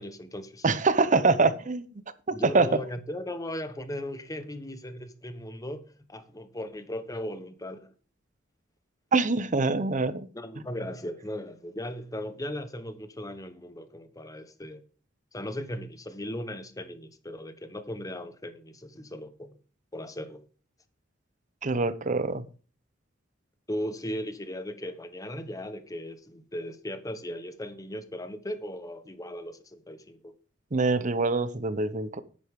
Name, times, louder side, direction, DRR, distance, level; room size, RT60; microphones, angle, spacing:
voice 1, 0.0-0.7 2.3-7.9 10.3-14.8 15.3-19.6 19.9-20.4 23.7-30.3, left 1 dB, 20° left, 1.1 m, -37 dB
voice 2, 0.6-1.9 2.3-2.7 9.1-10.3 21.6-22.4 30.7-32.2, right 3 dB, 40° right, 0.8 m, -24 dB
9.9 x 9.4 x 3.6 m
head